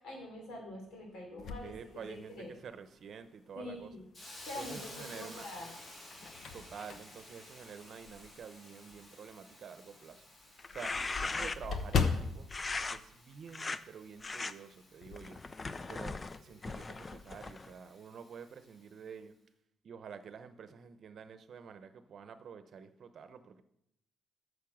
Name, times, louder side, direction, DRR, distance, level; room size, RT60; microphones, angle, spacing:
voice 1, 0.0-2.5 3.5-4.0 4.4-5.7 16.5-16.6, left 1 dB, 85° left, 1 dB, 3.5 m, -45 dB
sound 1, 1.4-2.7 3.3-3.4 4.8-5.3 5.8-8.5 8.9-9.0 9.4-9.5 9.8-9.9 10.1-13.9 14.2-14.4 14.7-15.3, left 5 dB, 60° left, 1.0 m, -38 dB
voice 2, 1.6-3.9 4.6-5.5 6.5-10.9 11.2-12.5 12.9-15.4 15.9-19.4 19.8-23.6, right 6 dB, 60° right, 11 dB, 0.8 m, -49 dB
Hiss, 4.1-18.9, left 1 dB, 45° left, 3.5 m, -54 dB
sound 2, 10.6-11.8 12.5-13.0 13.5-13.8 14.2-14.5 15.1-17.7, left 3 dB, 30° left, 0.5 m, -39 dB
8.6 x 6.6 x 6.2 m, 0.79 s
cardioid pair, 90°, 0 cm